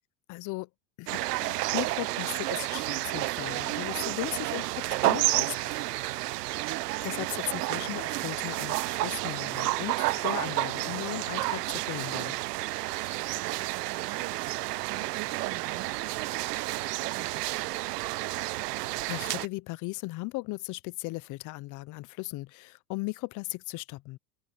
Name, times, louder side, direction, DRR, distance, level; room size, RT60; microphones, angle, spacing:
voice 1, 0.3-0.7 1.0-6.0 7.0-12.4 19.1-24.2, left 22 dB, 40° left, 0.6 m, -37 dB
sound 1, 1.1-19.5, right 19 dB, 90° right, 0.9 m, -31 dB
voice 2, 12.9-18.4, right 18 dB, 45° right, 1.3 m, -47 dB
open air
supercardioid pair, 125°, 46 cm